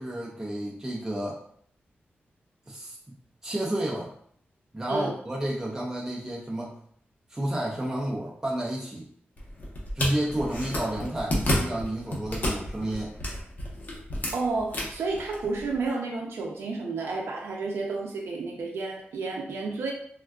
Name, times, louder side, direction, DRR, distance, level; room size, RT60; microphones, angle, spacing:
voice 1, 0.0-1.4 2.7-3.0 3.4-4.1 4.7-6.7 7.3-9.1 9.9-13.2, right 1 dB, 15° right, -4 dB, 0.5 m, -31 dB
sound 1, 9.4-15.9, left 1 dB, 45° left, 0.8 m, -31 dB
voice 2, 14.3-19.9, right 3 dB, 85° right, -1 dB, 0.4 m, -31 dB
3.5 x 2.3 x 2.3 m, 0.64 s
wide cardioid pair, 115°, 4 cm